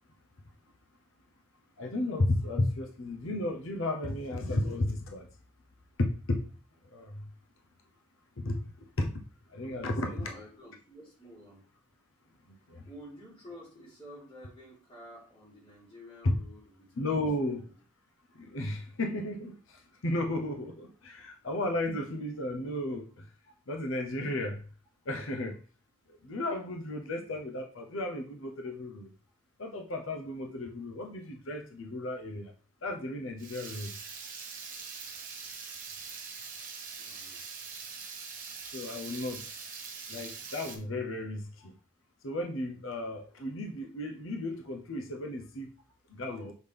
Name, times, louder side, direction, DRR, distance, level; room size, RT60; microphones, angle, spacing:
voice 1, 1.8-5.2 6.0-6.4 6.9-7.2 8.4-8.6 9.0-9.1 9.5-10.2 12.7-12.8 16.2-16.4 17.0-17.6 18.4-23.0 23.7-24.6 25.1-25.6 26.2-29.1 29.6-32.5 32.8-33.9 38.7-39.4 40.1-41.7 42.2-45.7 46.1-46.5, left 1 dB, 85° left, 3 dB, 0.8 m, -33 dB
voice 2, 10.0-11.7 12.8-17.7 23.5-23.6 35.4-35.7 37.0-37.5 41.6-41.7, equal, 25° left, -6 dB, 3.5 m, -51 dB
Water tap faucet / Liquid, 33.4-40.8, right 5 dB, 40° right, 1.4 m, -43 dB
6.2 x 5.4 x 3.4 m, 0.40 s
head